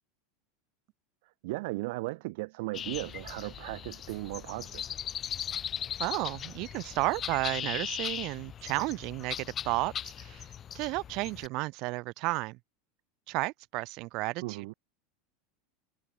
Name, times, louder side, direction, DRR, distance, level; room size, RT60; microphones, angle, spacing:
voice 1, 1.4-5.0 14.4-14.7, right 23 dB, 70° right, 2.0 m, -36 dB
sound 1, 2.7-11.5, left 9 dB, 30° left, 6.5 m, -39 dB
voice 2, 6.0-10.5 10.7-12.6 13.3-14.7, right 23 dB, 50° right, 2.0 m, -33 dB
supercardioid pair, 135°, 0 cm